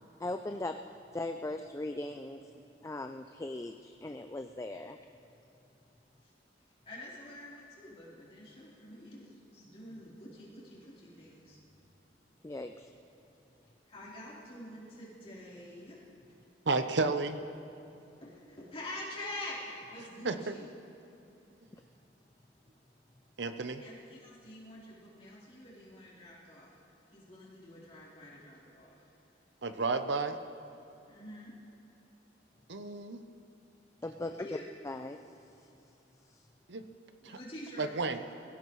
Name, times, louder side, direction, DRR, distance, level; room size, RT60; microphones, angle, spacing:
voice 1, 0.2-0.8 1.1-2.4 2.8-5.0 12.4-12.9 34.0-34.5 34.8-35.2 36.3-36.4, left 2 dB, 15° left, 6 dB, 0.4 m, -39 dB
voice 2, 6.8-11.9 13.8-16.0 18.2-20.7 23.8-26.7 27.1-29.1 31.1-31.5 34.4-34.6 37.2-38.4, left 1 dB, 35° left, -7 dB, 3.6 m, -47 dB
voice 3, 16.7-17.4 20.2-20.5 23.4-23.8 29.6-30.4 32.7-33.2 36.7-36.8 37.2-37.4 37.8-38.2, right 3 dB, 70° right, 9 dB, 0.7 m, -32 dB
22.5 x 16.0 x 3.1 m, 2.9 s
head